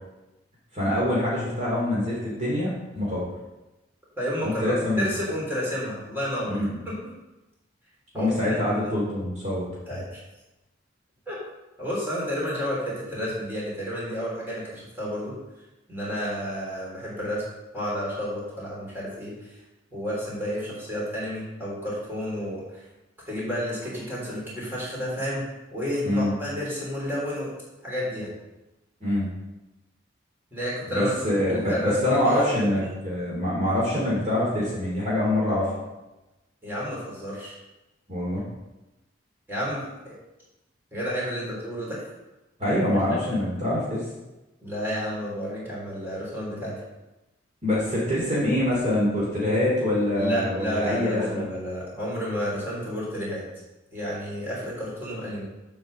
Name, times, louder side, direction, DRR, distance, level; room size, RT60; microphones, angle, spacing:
voice 1, 0.7-3.2 4.4-5.0 6.5-6.8 8.1-10.0 26.0-26.3 29.0-29.3 30.9-35.7 38.1-38.4 42.6-44.0 47.6-51.4, left 1 dB, 35° right, -6 dB, 2.6 m, -25 dB
voice 2, 4.2-7.1 8.1-8.9 9.9-10.2 11.3-11.4 11.8-15.4 15.9-17.4 17.7-19.6 19.9-22.8 23.3-25.4 25.7-27.5 27.8-28.3 30.5-31.1 31.5-32.9 36.6-37.5 39.5-40.1 40.9-42.0 44.6-46.7 50.1-53.4 53.9-55.4, equal, 10° right, -6 dB, 3.4 m, -31 dB
7.8 x 5.5 x 6.5 m, 1.0 s
head